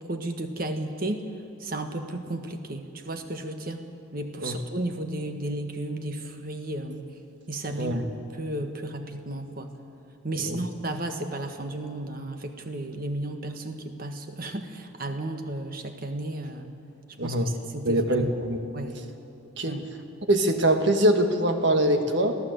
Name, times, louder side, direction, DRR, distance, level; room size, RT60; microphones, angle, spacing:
voice 1, 0.1-1.3 1.6-3.8 4.1-7.1 7.5-8.0 8.3-9.7 10.2-16.7 17.2-18.3 18.7-19.0 19.6-19.9, right 1 dB, 45° right, 6 dB, 1.5 m, -33 dB
voice 2, 17.2-17.5 17.8-18.6 19.6-19.7 20.3-22.4, right 1 dB, 60° right, 6 dB, 1.6 m, -23 dB
23.0 x 15.5 x 8.1 m, 2.7 s
head